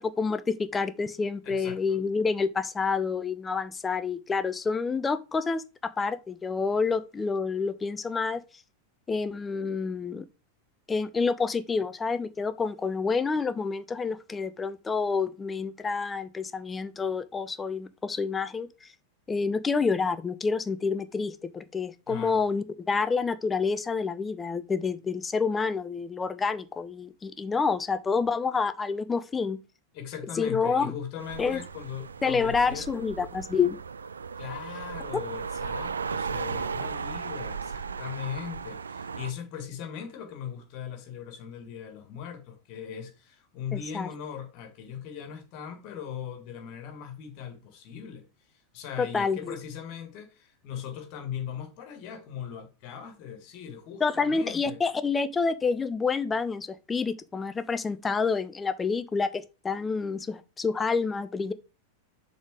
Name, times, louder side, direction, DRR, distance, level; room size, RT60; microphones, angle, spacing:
voice 1, 0.0-8.4 9.1-10.3 10.9-18.9 19.3-29.6 30.4-30.9 31.4-31.6 32.2-33.8 43.7-44.1 49.0-49.6 54.0-61.5, left 5 dB, 15° left, 0.5 m, -28 dB
voice 2, 1.4-2.0 22.1-22.4 29.9-32.9 34.4-54.8, left 8 dB, 40° left, 1.9 m, -39 dB
sound 1, 31.2-39.3, right 5 dB, 70° right, 0.4 m, -36 dB
7.1 x 4.0 x 4.8 m
figure-of-eight pair, 90°, 0 cm